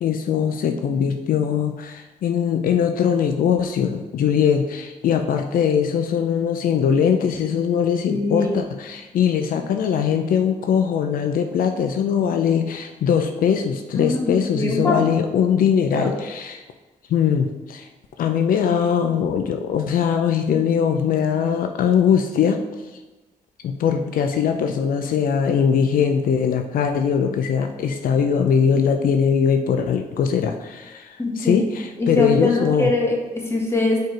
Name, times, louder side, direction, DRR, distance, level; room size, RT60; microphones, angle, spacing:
voice 1, 0.0-16.6 17.1-17.9 18.2-22.6 23.6-32.9, left 7 dB, 80° left, 6 dB, 0.5 m, -21 dB
voice 2, 8.1-8.6 14.0-15.0 15.9-16.1 31.2-31.6 32.0-34.0, left 2 dB, 20° left, -1 dB, 1.5 m, -22 dB
4.7 x 4.6 x 4.5 m, 1.1 s
cardioid pair, 95°, 14 cm